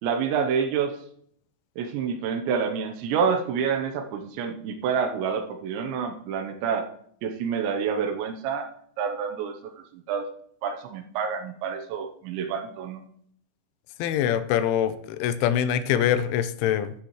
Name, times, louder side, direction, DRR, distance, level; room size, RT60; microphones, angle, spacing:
voice 1, 0.0-1.0 1.8-6.9 7.2-8.7 9.0-10.3 10.6-13.0, right 6 dB, 75° right, 6 dB, 3.0 m, -28 dB
voice 2, 14.0-16.9, left 10 dB, 85° left, 12 dB, 3.0 m, -24 dB
11.5 x 8.9 x 3.1 m, 0.65 s
omnidirectional pair, 5.5 m